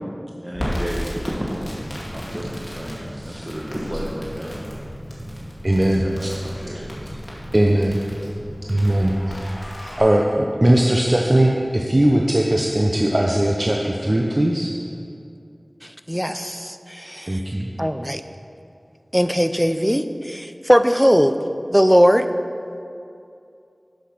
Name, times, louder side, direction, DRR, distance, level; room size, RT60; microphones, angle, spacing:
voice 1, 0.4-1.7 2.1-4.6 6.0-6.8 9.2-9.3 9.7-9.9, equal, 20° right, -4 dB, 1.1 m, -32 dB
Crackle, 0.5-10.0, equal, 45° left, 2.3 m, -35 dB
sound 1, 1.3-8.7, equal, 90° right, 1.9 m, -39 dB
voice 2, 5.6-6.3 7.5-8.0 8.7-9.2 9.4-9.5 10.0-14.7 17.3-17.7, right 1 dB, 40° right, -1 dB, 0.7 m, -19 dB
voice 3, 16.1-17.4 17.8-18.2 19.1-21.3 21.7-22.3, equal, 5° right, 9 dB, 0.4 m, -19 dB
8.3 x 6.3 x 5.9 m, 2.6 s
wide cardioid pair, 50°, 0 cm